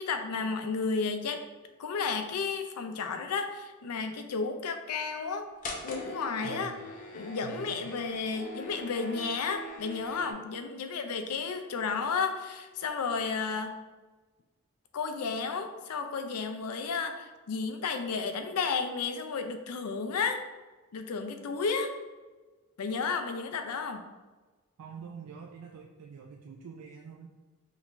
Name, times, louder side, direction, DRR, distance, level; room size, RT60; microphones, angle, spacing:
voice 1, 0.0-1.4 1.8-5.5 5.8-6.7 7.1-13.7 14.9-20.4 20.9-21.9 22.8-24.0, left 5 dB, 90° left, 7 dB, 0.5 m, -32 dB
sound 1, 5.6-10.3, left 1 dB, 35° left, 0.6 m, -42 dB
voice 2, 6.4-6.9 7.4-8.0 24.8-27.3, right 6 dB, 90° right, 2 dB, 0.4 m, -46 dB
5.2 x 3.0 x 2.5 m, 1.2 s
head